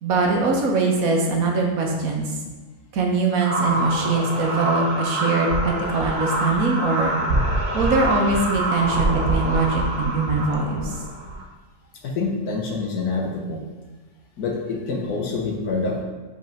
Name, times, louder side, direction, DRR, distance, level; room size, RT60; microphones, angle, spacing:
voice 1, 0.0-2.3 2.9-7.1 7.7-10.9, right 3 dB, 70° right, 1 dB, 1.4 m, -22 dB
sound 1, 3.4-11.4, right 1 dB, 85° right, 1.4 m, -25 dB
voice 2, 12.0-13.6 14.4-16.0, left 3 dB, 85° left, 0 dB, 1.6 m, -26 dB
5.3 x 4.5 x 5.2 m, 1.3 s
omnidirectional pair, 1.6 m